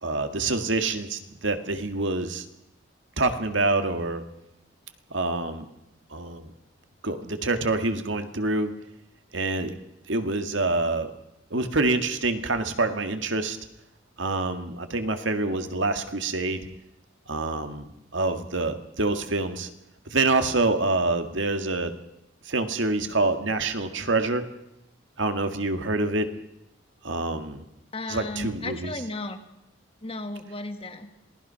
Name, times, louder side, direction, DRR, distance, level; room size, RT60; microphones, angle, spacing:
voice 1, 0.0-2.5 3.2-4.2 5.1-5.7 6.1-6.5 7.0-8.7 9.3-9.7 10.1-11.1 11.5-13.6 14.2-16.7 17.3-19.7 20.1-21.9 22.5-24.4 25.2-26.3 27.0-27.6 28.1-28.9, right 2 dB, 75° right, 7 dB, 1.9 m, -26 dB
voice 2, 27.9-29.4 30.0-31.1, left 2 dB, 30° left, 7 dB, 1.7 m, -34 dB
26.5 x 19.0 x 5.8 m, 0.86 s
head